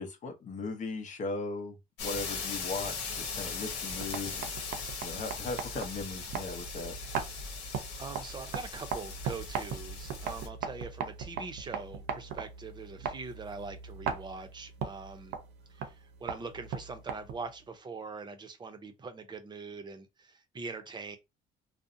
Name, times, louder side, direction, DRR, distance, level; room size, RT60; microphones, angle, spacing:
voice 1, 0.0-1.8 2.0-3.1 3.3-4.5 5.0-6.9, left 3 dB, 45° left, 0.8 m, -38 dB
sound 1, 2.0-10.5, left 4 dB, 90° left, 0.9 m, -39 dB
sound 2, 3.8-17.6, right 6 dB, 80° right, 0.6 m, -40 dB
voice 2, 7.5-15.4 15.7-21.2, right 4 dB, 25° right, 0.6 m, -43 dB
2.6 x 2.0 x 2.6 m
cardioid pair, 110°, 17 cm